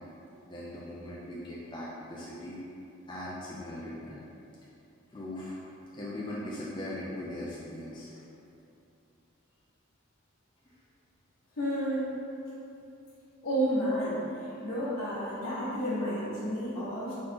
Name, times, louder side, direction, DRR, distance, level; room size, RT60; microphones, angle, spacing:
voice 1, 0.5-2.6 3.1-4.2 5.1-5.5 5.9-8.2, left 1 dB, 20° left, -7 dB, 0.4 m, -39 dB
voice 2, 11.6-12.2 13.4-14.2 14.6-17.1, equal, 75° left, -13 dB, 1.0 m, -31 dB
4.1 x 2.8 x 3.5 m, 2.8 s
head